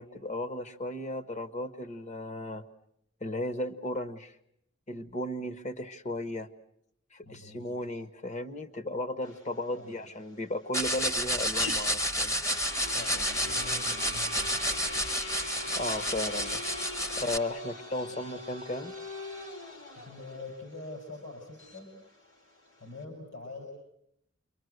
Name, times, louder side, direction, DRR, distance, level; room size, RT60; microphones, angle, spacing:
voice 1, 0.0-2.6 3.2-4.3 4.9-6.5 7.1-12.4 15.6-16.7 17.2-18.9, left 1 dB, 35° left, 11 dB, 1.2 m, -35 dB
voice 2, 7.2-7.7 9.8-10.0 12.9-14.9 18.0-18.1 19.9-22.0 22.8-23.6, left 3 dB, 65° left, 3 dB, 6.3 m, -45 dB
sound 1, 9.2-23.0, left 2 dB, 85° left, 5.0 m, -41 dB
sound 2, 10.7-17.4, equal, 15° left, 1.0 m, -30 dB
28.5 x 24.0 x 7.9 m, 0.75 s
head